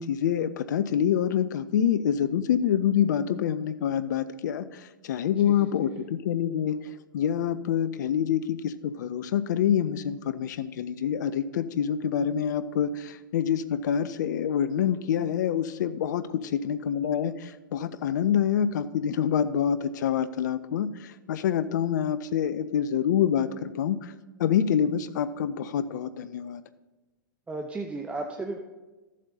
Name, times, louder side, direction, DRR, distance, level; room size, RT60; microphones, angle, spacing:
voice 1, 0.0-6.8 7.1-24.1 24.4-26.6, left 9 dB, 60° left, 14 dB, 0.6 m, -26 dB
voice 2, 27.5-28.6, right 3 dB, 10° right, 3 dB, 0.7 m, -34 dB
14.0 x 7.4 x 2.7 m, 1.1 s
figure-of-eight pair, 105°, 11 cm